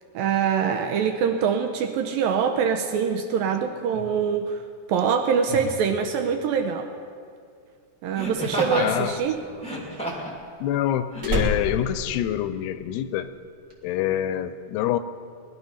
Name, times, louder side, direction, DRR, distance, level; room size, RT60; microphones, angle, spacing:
voice 1, 0.1-4.6 4.9-6.9 8.0-9.4, right 6 dB, 75° right, 5 dB, 2.2 m, -24 dB
Laughter, 3.9-4.1 5.4-5.8 8.1-8.9 9.5-10.4 11.1-11.2, equal, 5° left, 0.8 m, -30 dB
voice 2, 8.8-9.2 10.6-13.3 13.8-15.0, left 12 dB, 85° left, 12 dB, 2.7 m, -26 dB
Slam, 9.1-13.0 13.3-13.7, equal, 40° right, 1.5 m, -31 dB
19.5 x 12.0 x 5.7 m, 2.3 s
omnidirectional pair, 4.6 m